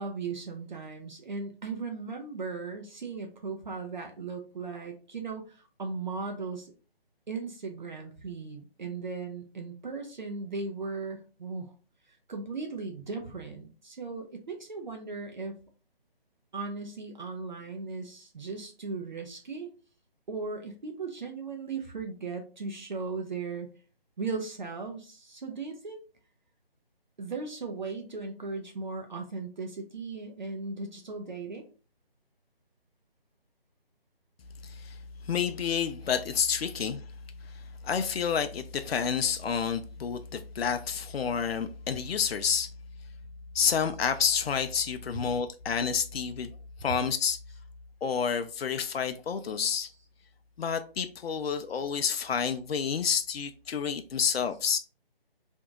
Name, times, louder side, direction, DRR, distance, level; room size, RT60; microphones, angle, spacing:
voice 1, 0.0-6.7 7.3-11.7 12.1-15.6 16.5-19.7 20.3-23.7 24.2-26.0 27.2-31.7, right 4 dB, 50° right, 0.7 m, -37 dB
voice 2, 34.6-35.0 35.2-37.0 37.5-42.7 43.5-46.5 46.8-47.4 48.0-49.9 50.6-54.8, left 7 dB, 75° left, 0.5 m, -29 dB
2.8 x 2.6 x 3.5 m
figure-of-eight pair, 150°, 30 cm